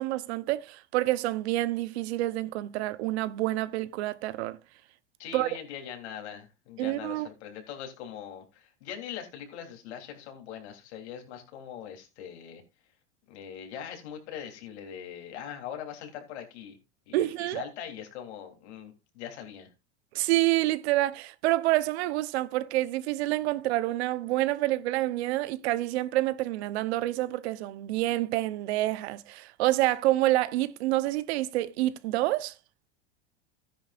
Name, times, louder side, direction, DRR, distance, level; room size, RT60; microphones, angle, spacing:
voice 1, 0.0-4.6 5.3-5.5 6.8-7.3 17.1-17.6 20.1-32.5, right 16 dB, 70° right, 0.9 m, -28 dB
voice 2, 5.2-12.6 13.3-16.8 17.1-19.7, left 9 dB, 75° left, 3.5 m, -41 dB
13.5 x 10.0 x 2.5 m
supercardioid pair, 120°, 33 cm